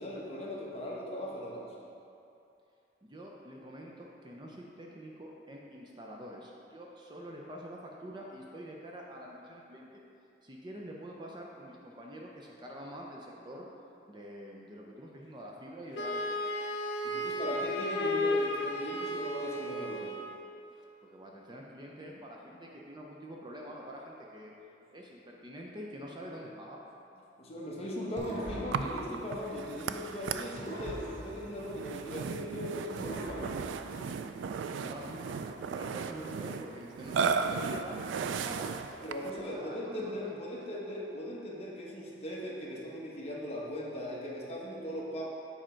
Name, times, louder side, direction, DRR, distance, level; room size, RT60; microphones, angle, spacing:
voice 1, 0.0-1.7 17.0-20.1 27.4-33.5 39.0-45.2, equal, 35° left, -4 dB, 1.1 m, -39 dB
voice 2, 3.0-10.0 10.4-13.7 14.1-16.5 21.0-24.5 24.9-26.8 34.3-38.0 38.3-38.7 39.3-40.4, equal, 25° right, -2 dB, 0.6 m, -46 dB
Wind instrument woodwind instrument, 15.9-20.4, left 1 dB, 70° left, 0.6 m, -33 dB
sound 1, 28.2-30.1 30.6-32.4 33.0-34.7, right 1 dB, 45° right, 1.1 m, -44 dB
Burping eructation, 28.7-39.4, right 5 dB, 90° right, 0.3 m, -36 dB
7.6 x 4.9 x 4.4 m, 2.7 s
head